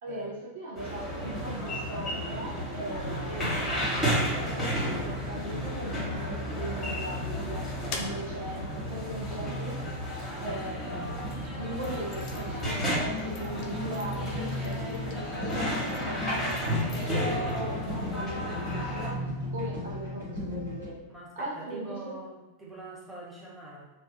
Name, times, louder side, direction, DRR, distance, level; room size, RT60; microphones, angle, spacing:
voice 1, 0.0-7.7 7.9-9.8 10.4-19.3 19.5-21.0 21.4-22.2, right 1 dB, 55° right, -4 dB, 0.6 m, -39 dB
sound 1, 0.8-19.1, equal, 10° left, 1.0 m, -33 dB
sound 2, 1.1-20.9, equal, 80° right, 0.9 m, -38 dB
sound 3, 7.9-10.7 11.3-17.6, left 4 dB, 45° left, 0.3 m, -47 dB
voice 2, 21.1-23.9, right 2 dB, 10° right, -6 dB, 0.8 m, -44 dB
2.3 x 2.1 x 2.6 m, 1.2 s
figure-of-eight pair, 90°, 0 cm